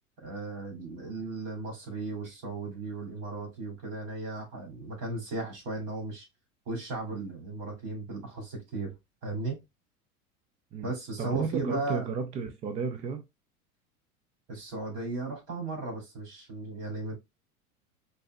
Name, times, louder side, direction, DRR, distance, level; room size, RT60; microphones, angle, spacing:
voice 1, 0.2-6.3 6.7-8.9 9.2-9.6 10.8-12.0 14.5-17.1, right 3 dB, 45° right, 2.7 m, -36 dB
voice 2, 11.2-13.2, right 5 dB, 15° right, 0.3 m, -33 dB
5.3 x 2.7 x 2.2 m
figure-of-eight pair, 85°, 44 cm